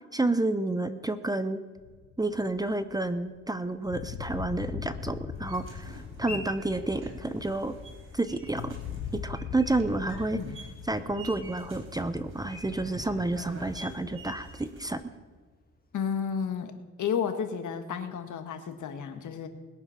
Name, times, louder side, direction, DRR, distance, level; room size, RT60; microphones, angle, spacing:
voice 1, 0.1-1.6 2.2-7.7 8.1-8.8 9.1-10.4 10.9-15.1, right 2 dB, 10° right, 11 dB, 0.7 m, -30 dB
sound 1, 1.8-3.6 3.8-14.6, left 9 dB, 90° left, 0.7 m, -42 dB
sound 2, 4.2-16.0, left 4 dB, 30° left, 2.1 m, -52 dB
sound 3, 5.3-14.9, right 1 dB, 40° right, 4.6 m, -46 dB
voice 2, 15.9-16.7 17.0-19.5, left 7 dB, 70° left, 8 dB, 1.5 m, -32 dB
21.0 x 7.2 x 5.7 m, 1.4 s
cardioid pair, 95°, 32 cm